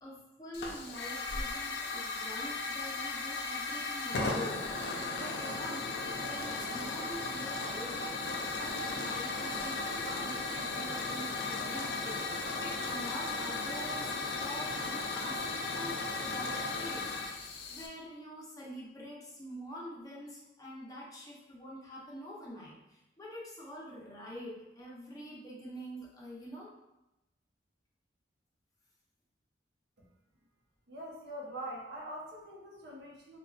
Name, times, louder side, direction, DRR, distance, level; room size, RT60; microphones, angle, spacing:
voice 1, 0.0-26.7, equal, 20° left, -4 dB, 0.6 m, -46 dB
Hiss / Fire, 0.5-17.9, left 3 dB, 65° left, 0.4 m, -36 dB
voice 2, 30.9-33.4, right 1 dB, 65° right, -2 dB, 0.7 m, -43 dB
4.2 x 2.2 x 2.3 m, 0.93 s
head